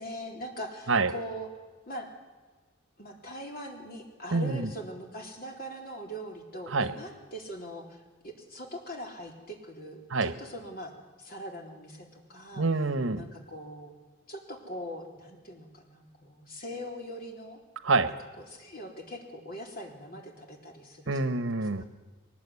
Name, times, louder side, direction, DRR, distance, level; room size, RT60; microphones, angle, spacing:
voice 1, 0.0-1.5 1.9-2.1 3.0-10.9 11.2-12.7 13.2-13.9 14.3-17.6 18.4-21.4 21.8-21.9, equal, 50° left, 2 dB, 3.9 m, -41 dB
voice 2, 4.3-4.7 6.7-6.9 10.1-10.3 12.6-13.2 17.8-18.1 21.1-21.8, right 3 dB, 85° right, 12 dB, 1.2 m, -26 dB
22.0 x 19.5 x 9.7 m, 1.3 s
head